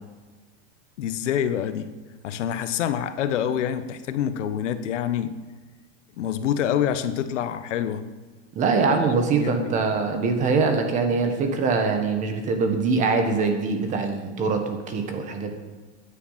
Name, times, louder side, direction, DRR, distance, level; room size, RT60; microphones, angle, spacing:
voice 1, 1.0-1.9 2.2-5.3 6.2-8.1 8.9-9.0 9.4-9.7, left 9 dB, 85° left, 11 dB, 1.3 m, -26 dB
voice 2, 8.5-15.5, right 4 dB, 20° right, 5 dB, 1.4 m, -23 dB
15.5 x 10.0 x 5.8 m, 1.3 s
supercardioid pair, 175°, 35 cm